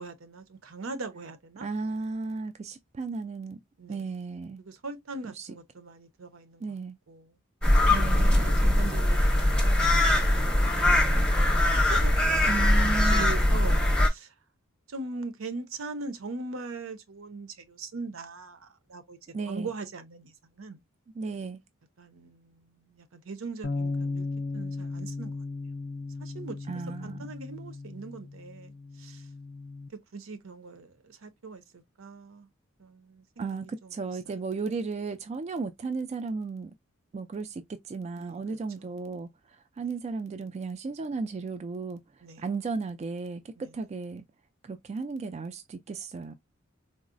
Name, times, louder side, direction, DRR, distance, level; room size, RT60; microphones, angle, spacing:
voice 1, 0.0-1.7 3.8-4.1 4.6-6.6 7.1-7.3 7.9-10.0 10.4-11.2 11.7-14.3 14.9-19.2 19.5-20.8 22.0-24.3 24.5-25.4 26.2-26.6 27.0-29.2 30.1-32.5 32.8-34.2 38.2-38.4 42.2-42.4 43.6-43.7, right 3 dB, 80° right, 0.7 m, -41 dB
voice 2, 1.6-3.6 3.9-4.6 5.3-5.5 6.6-7.0 7.9-8.5 12.5-13.4 19.3-19.7 21.2-21.6 26.7-27.2 33.4-36.7 37.1-39.3 39.8-42.0 42.4-44.2 44.6-46.3, right 4 dB, 30° right, 0.3 m, -34 dB
sound 1, 7.6-14.1, left 1 dB, 5° left, 0.7 m, -22 dB
sound 2, 23.6-29.9, left 3 dB, 50° left, 0.4 m, -36 dB
3.8 x 2.1 x 2.5 m
head